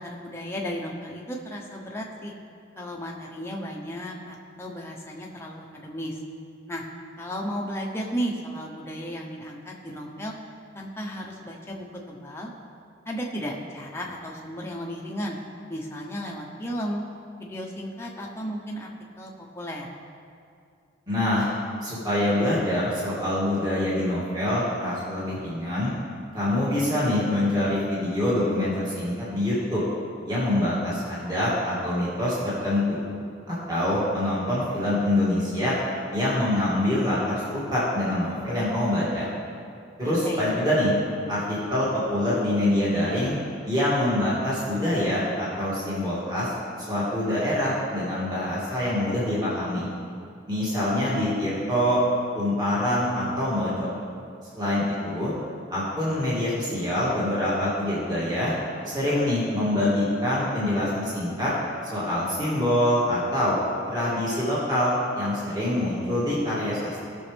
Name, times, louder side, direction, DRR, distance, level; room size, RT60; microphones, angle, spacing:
voice 1, 0.0-2.3 2.7-6.2 6.7-6.8 7.2-10.3 10.7-12.5 13.0-15.4 15.7-17.0 17.4-18.9 19.2-19.9 40.0-40.5, equal, 15° left, -1 dB, 1.0 m, -34 dB
voice 2, 21.1-21.5 21.8-25.9 26.3-29.8 30.2-33.1 33.5-35.8 36.1-39.3 40.0-40.9 41.3-43.3 43.6-46.5 46.9-49.9 50.5-52.0 52.3-53.9 54.5-55.3 55.7-58.5 58.8-61.5 61.9-63.5 63.9-67.1, left 1 dB, 20° right, -9 dB, 2.5 m, -25 dB
17.0 x 6.3 x 3.5 m, 2.4 s
head